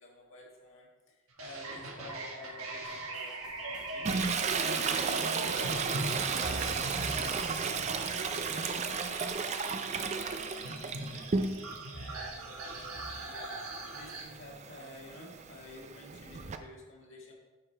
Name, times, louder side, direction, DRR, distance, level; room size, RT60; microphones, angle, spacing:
voice 1, 0.0-4.1 5.0-13.6 13.9-17.3, left 1 dB, 65° left, -3 dB, 1.7 m, -51 dB
sound 1, 1.4-14.2, right 2 dB, 85° right, 1.3 m, -39 dB
sound 2, 2.8-9.7 10.0-10.3 10.9-11.0 11.8-11.9, equal, 5° right, 1.1 m, -58 dB
Toilet flush, 4.0-11.9 12.3-16.6, right 5 dB, 30° right, 0.4 m, -34 dB
8.4 x 4.9 x 4.4 m, 1.3 s
head